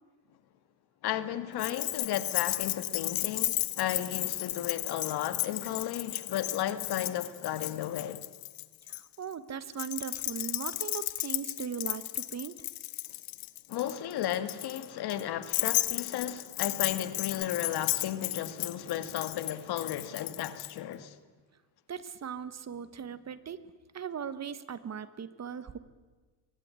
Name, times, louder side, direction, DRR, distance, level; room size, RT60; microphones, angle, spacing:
voice 1, 1.0-8.3 13.7-21.2, left 11 dB, 65° left, 1.8 m, -34 dB
Keys jangling, 1.6-9.0 9.7-20.7, left 22 dB, 90° left, 1.1 m, -34 dB
voice 2, 8.9-12.6 21.9-23.6 23.9-25.8, right 7 dB, 40° right, 1.5 m, -39 dB
23.0 x 18.5 x 9.7 m
supercardioid pair, 90°, 41 cm